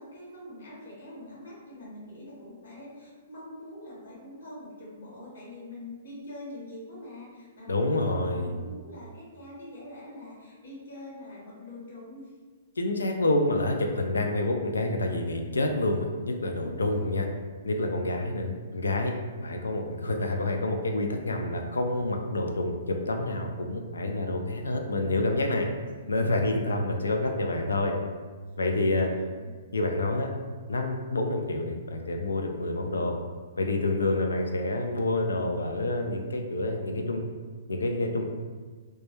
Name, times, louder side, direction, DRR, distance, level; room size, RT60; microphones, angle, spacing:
voice 1, 0.0-12.3 16.6-17.0 19.2-19.6 25.8-26.1 28.7-29.5, left 1 dB, 70° left, -6 dB, 0.9 m, -44 dB
voice 2, 7.7-8.5 12.8-17.3 17.6-19.1 19.4-25.7 26.1-27.9 28.6-29.1 29.7-30.3 30.7-33.1 33.6-37.3 37.7-38.2, left 2 dB, 90° left, 3 dB, 0.3 m, -28 dB
2.2 x 2.0 x 3.0 m, 1.5 s
hypercardioid pair, 130°, 0 cm